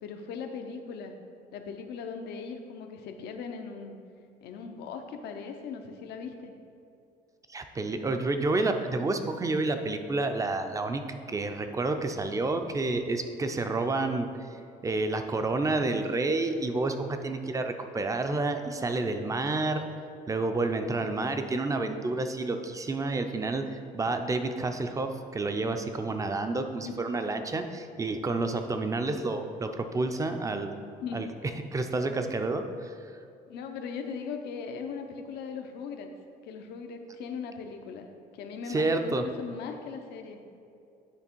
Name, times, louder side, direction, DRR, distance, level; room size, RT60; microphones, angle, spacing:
voice 1, 0.0-1.1 1.5-4.0 4.4-6.5 26.8-27.0 31.0-31.3 33.5-36.1 36.4-38.1 38.3-40.4, left 5 dB, 75° left, 5 dB, 0.7 m, -39 dB
voice 2, 7.5-14.3 14.8-19.8 20.3-30.8 31.1-31.3 31.7-32.9 38.7-39.2, right 2 dB, 20° right, 7 dB, 0.5 m, -29 dB
9.8 x 3.3 x 4.5 m, 2.5 s
cardioid pair, 110°, 17 cm